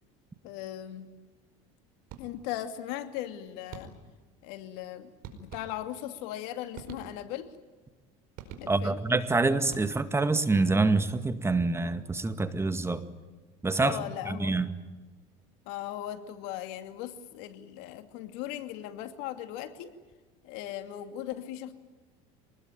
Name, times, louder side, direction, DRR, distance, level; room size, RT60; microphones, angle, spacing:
voice 1, 0.4-1.1 2.2-3.9 4.4-7.6 8.6-9.0 13.8-14.6 15.7-19.9 20.4-21.7, left 12 dB, 75° left, 2.5 m, -38 dB
sound 1, 2.1-2.7 3.7-4.3 5.2-6.1 6.7-7.5 8.4-9.1 9.6-10.3, right 6 dB, 60° right, 4.9 m, -47 dB
voice 2, 8.7-13.0 13.6-14.0 14.3-14.7, right 3 dB, 15° right, 2.0 m, -26 dB
26.5 x 20.5 x 9.2 m
supercardioid pair, 100°, 17 cm